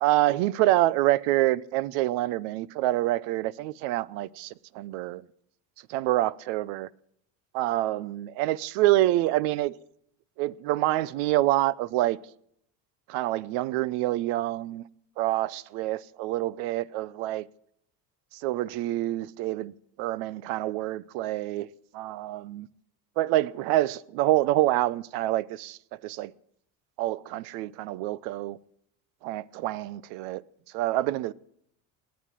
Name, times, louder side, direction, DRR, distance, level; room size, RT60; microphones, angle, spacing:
voice 1, 0.0-5.2 5.9-6.9 7.5-9.8 10.4-12.2 13.1-14.8 15.2-17.5 18.3-19.7 20.0-21.7 21.9-22.7 23.2-26.3 27.0-28.6 29.2-30.4 30.7-31.3, right 16 dB, 85° right, 0.7 m, -26 dB
18.5 x 9.4 x 7.4 m
cardioid pair, 115°, 42 cm